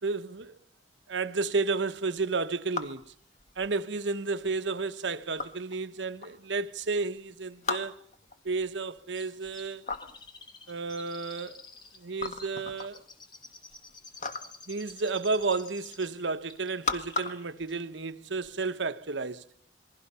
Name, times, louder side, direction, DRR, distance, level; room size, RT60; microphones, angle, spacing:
voice 1, 0.0-0.6 1.1-3.0 3.6-8.0 8.4-9.8 10.7-11.6 12.0-13.0 14.7-19.4, right 4 dB, 80° right, 1.0 m, -32 dB
sound 1, 2.2-18.5, left 4 dB, 45° left, 1.7 m, -40 dB
Chirp tweet, 9.1-16.2 16.5-17.4 17.7-17.8, left 3 dB, 25° left, 3.5 m, -50 dB
28.0 x 22.5 x 5.6 m
head